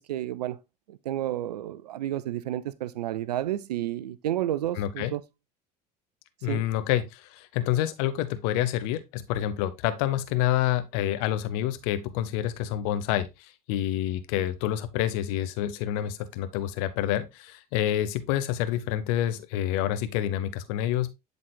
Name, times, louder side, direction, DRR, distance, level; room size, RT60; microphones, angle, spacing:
voice 1, 0.1-0.6 0.9-5.2 6.5-6.7, right 13 dB, 75° right, 0.4 m, -31 dB
voice 2, 4.8-5.1 6.4-21.1, left 12 dB, 60° left, 0.8 m, -28 dB
11.0 x 4.0 x 2.2 m
figure-of-eight pair, 65°, 21 cm